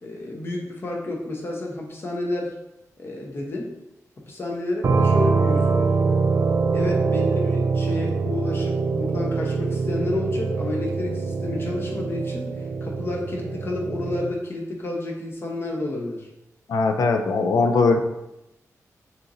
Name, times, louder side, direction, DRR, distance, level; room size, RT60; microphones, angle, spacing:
voice 1, 0.0-2.6 3.0-3.7 4.3-5.9 6.7-16.3, left 2 dB, 40° left, -1 dB, 0.9 m, -30 dB
sound 1, 4.8-14.3, right 4 dB, 45° right, 0.4 m, -24 dB
voice 2, 16.7-18.0, left 3 dB, 75° left, 5 dB, 0.5 m, -20 dB
6.5 x 3.0 x 2.6 m, 0.92 s
wide cardioid pair, 150°, 6 cm